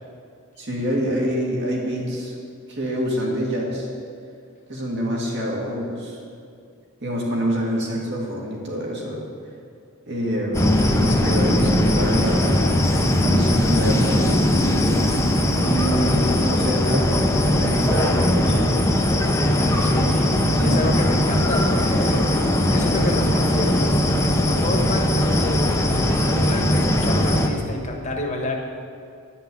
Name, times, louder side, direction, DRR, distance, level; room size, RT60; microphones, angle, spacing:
voice 1, 0.6-2.3 2.7-3.9 4.7-6.2 7.0-9.3 10.1-12.6 13.1-14.7 15.6-19.0 19.4-19.6 20.6-20.8, equal, 55° right, -2 dB, 2.2 m, -26 dB
sound 1, 10.5-27.5, left 1 dB, 15° left, 0.8 m, -19 dB
voice 2, 19.5-24.0 24.4-28.6, left 1 dB, 35° left, 2 dB, 1.3 m, -29 dB
10.5 x 5.9 x 8.5 m, 2.4 s
head